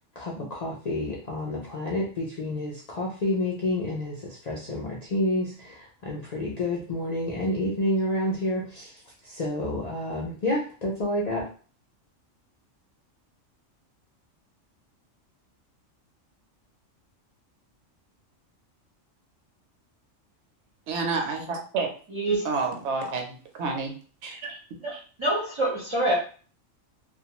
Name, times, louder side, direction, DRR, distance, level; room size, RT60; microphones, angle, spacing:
voice 1, 0.2-8.9 9.3-11.5, left 1 dB, 65° left, -3 dB, 0.4 m, -29 dB
voice 2, 20.9-21.9 22.4-23.9 24.2-24.6 24.9-25.0, right 4 dB, 65° right, 2 dB, 0.8 m, -29 dB
voice 3, 22.1-22.5 24.8-26.1, right 1 dB, 30° right, -5 dB, 0.5 m, -26 dB
2.4 x 2.2 x 2.8 m, 0.40 s
omnidirectional pair, 1.3 m